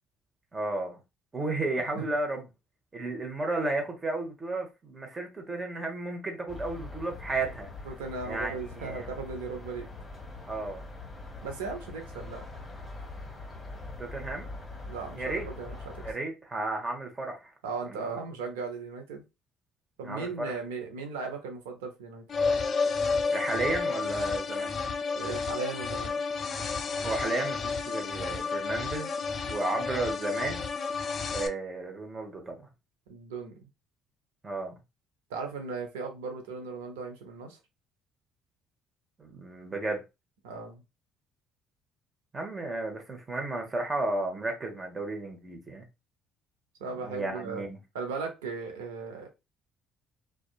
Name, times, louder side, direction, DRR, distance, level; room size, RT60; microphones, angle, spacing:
voice 1, 0.5-1.0 1.3-2.4 2.9-7.7 8.2-9.1 10.5-10.8 14.0-14.5 15.2-15.5 16.0-17.5 17.9-18.2 20.0-20.5 23.3-24.7 27.0-29.1 29.5-30.6 31.3-32.7 34.4-34.7 39.2-40.0 42.3-45.8 47.0-47.8, right 2 dB, 30° right, 1.0 m, -33 dB
voice 2, 1.7-2.0 7.8-9.9 11.4-12.4 14.9-15.8 17.6-19.2 20.0-22.2 25.2-26.1 33.1-33.5 35.3-37.6 40.4-40.8 46.8-47.6 47.9-49.3, right 4 dB, 85° right, 0.6 m, -37 dB
sound 1, 6.5-16.1, left 2 dB, 20° left, 1.1 m, -43 dB
sound 2, 22.3-31.5, left 4 dB, 45° left, 0.4 m, -31 dB
2.6 x 2.3 x 2.3 m
hypercardioid pair, 60°, 0 cm